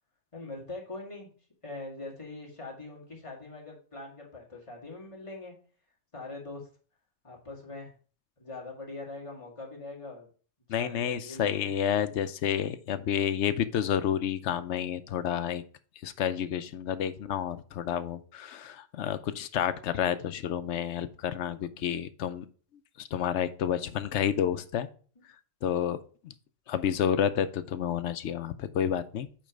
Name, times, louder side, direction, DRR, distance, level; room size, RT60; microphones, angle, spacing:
voice 1, 0.3-1.3 1.6-5.5 6.1-6.6 7.2-7.9 8.4-10.3 10.8-11.7, left 2 dB, 25° left, -2 dB, 2.1 m, -42 dB
voice 2, 10.7-15.6 16.0-22.4 23.0-24.9 25.6-26.0 26.2-26.3 26.7-29.3, left 9 dB, 70° left, 12 dB, 0.9 m, -30 dB
8.7 x 3.2 x 5.1 m, 0.40 s
omnidirectional pair, 1.3 m